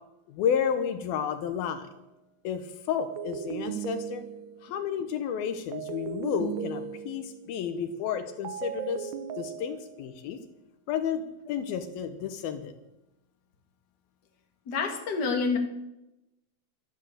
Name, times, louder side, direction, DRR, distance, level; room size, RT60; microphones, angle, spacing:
voice 1, 0.3-1.9 2.4-4.2 4.6-10.4 10.9-12.7, left 8 dB, 80° left, 9 dB, 2.9 m, -31 dB
sound 1, 1.7-2.0 3.0-4.7 5.7-7.4 8.4-10.1, right 9 dB, 85° right, 1.6 m, -37 dB
voice 2, 14.7-15.6, left 4 dB, 35° left, 3 dB, 2.2 m, -27 dB
13.0 x 10.5 x 8.0 m, 0.90 s
omnidirectional pair, 4.3 m